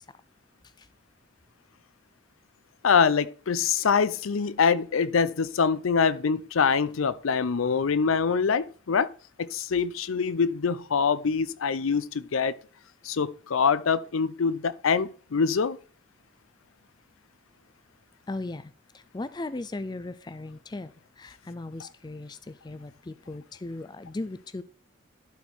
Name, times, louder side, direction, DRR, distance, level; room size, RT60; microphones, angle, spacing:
voice 1, 2.8-9.1 9.5-12.5 13.0-15.8, left 5 dB, 90° left, 0.5 m, -24 dB
voice 2, 18.3-20.9 21.2-24.6, left 2 dB, 20° left, 0.4 m, -37 dB
11.5 x 4.5 x 4.5 m
head